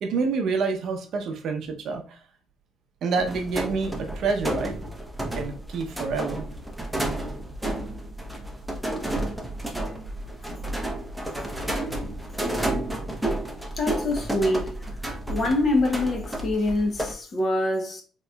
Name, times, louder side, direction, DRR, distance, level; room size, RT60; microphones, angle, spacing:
voice 1, 0.0-2.2 3.0-4.8 5.3-6.5, right 4 dB, 65° right, 0.6 m, -28 dB
sound 1, 3.2-17.1, right 1 dB, 5° right, 0.6 m, -31 dB
voice 2, 13.7-14.8 15.3-18.0, left 2 dB, 35° left, 0.8 m, -25 dB
3.7 x 2.9 x 2.2 m
cardioid pair, 120°, 0 cm